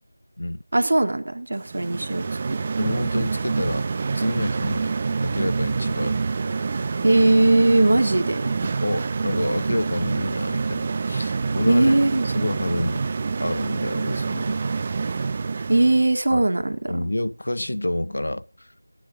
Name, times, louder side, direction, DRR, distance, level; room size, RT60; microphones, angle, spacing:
voice 1, 0.7-2.3 7.0-8.5 11.7-12.3 15.7-17.1, right 2 dB, 55° right, 1.8 m, -19 dB
sound 1, 1.6-16.1, right 4 dB, 25° right, 0.6 m, -26 dB
voice 2, 2.8-3.9 4.1-4.9 5.2-6.2 8.8-11.9 12.2-13.1 13.4-14.6 16.3-16.4 16.9-18.7, left 1 dB, 70° left, 0.8 m, -28 dB
22.0 x 9.5 x 2.5 m
figure-of-eight pair, 170°, 0 cm